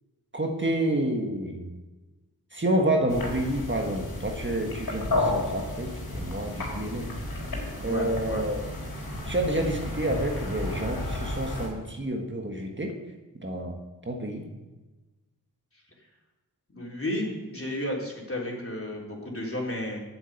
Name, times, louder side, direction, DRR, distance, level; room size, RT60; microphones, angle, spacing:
voice 1, 0.3-1.7 2.5-7.1 7.8-8.6 9.2-12.9 13.4-13.8 14.0-14.5, right 1 dB, 30° right, 2 dB, 1.7 m, -29 dB
sound 1, 3.1-11.7, left 1 dB, 70° left, 4.1 m, -32 dB
voice 2, 7.8-8.5 15.7-15.8 16.7-20.0, left 1 dB, 35° left, -2 dB, 3.8 m, -33 dB
9.0 x 8.0 x 8.1 m, 1.1 s
cardioid pair, 45°, 38 cm